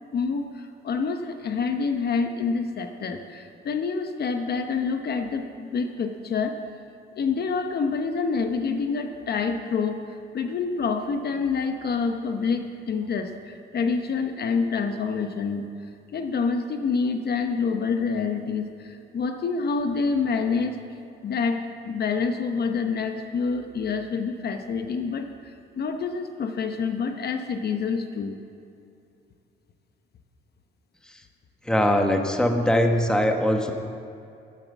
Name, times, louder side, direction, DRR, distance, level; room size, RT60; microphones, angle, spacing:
voice 1, 0.1-6.6 7.2-15.7 16.1-20.8 21.2-28.4, left 5 dB, 55° left, 6 dB, 0.9 m, -27 dB
voice 2, 31.7-33.7, left 1 dB, 5° left, 4 dB, 1.2 m, -21 dB
10.5 x 10.5 x 7.2 m, 2.6 s
cardioid pair, 90°, 20 cm